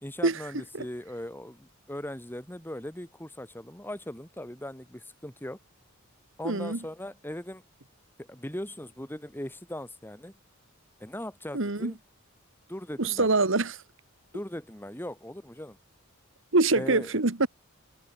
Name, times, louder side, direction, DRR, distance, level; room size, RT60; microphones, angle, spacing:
voice 1, 0.0-5.6 6.4-7.6 8.2-10.3 11.0-12.0 12.7-13.3 14.3-15.8 16.7-17.2, left 1 dB, 10° left, 3.0 m, -39 dB
voice 2, 6.4-6.8 11.5-11.9 13.0-13.8 16.5-17.5, right 3 dB, 65° right, 1.7 m, -24 dB
head